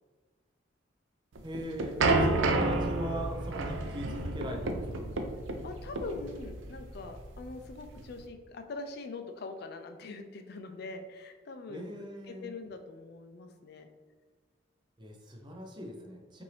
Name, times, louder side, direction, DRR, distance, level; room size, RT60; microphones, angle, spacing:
voice 1, 1.4-5.0 11.7-12.5 15.0-16.4, equal, 25° right, 1 dB, 0.6 m, -40 dB
sound 1, 1.4-8.2, right 2 dB, 85° right, 0.5 m, -30 dB
voice 2, 5.6-11.9 12.3-13.9, left 3 dB, 55° left, 6 dB, 0.4 m, -43 dB
5.6 x 2.6 x 3.2 m, 1.4 s
head